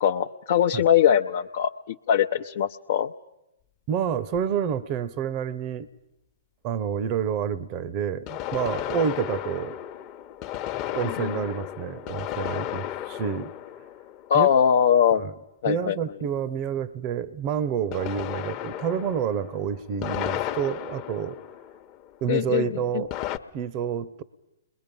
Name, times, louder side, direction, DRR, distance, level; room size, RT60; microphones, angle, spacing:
voice 1, 0.0-3.1 11.0-11.3 14.3-15.2 15.6-16.0 22.3-22.7, left 9 dB, 55° left, 2 dB, 0.7 m, -21 dB
voice 2, 3.9-5.9 6.6-9.8 10.9-13.5 14.3-14.5 15.1-15.3 15.6-21.4 22.2-23.1 23.5-24.2, right 8 dB, 40° right, 16 dB, 0.9 m, -28 dB
sound 1, 4.3-4.4 8.3-14.8 17.9-22.1 23.1-23.4, left 12 dB, 35° left, 1.0 m, -34 dB
29.5 x 21.5 x 5.4 m, 0.91 s
hypercardioid pair, 120°, 0 cm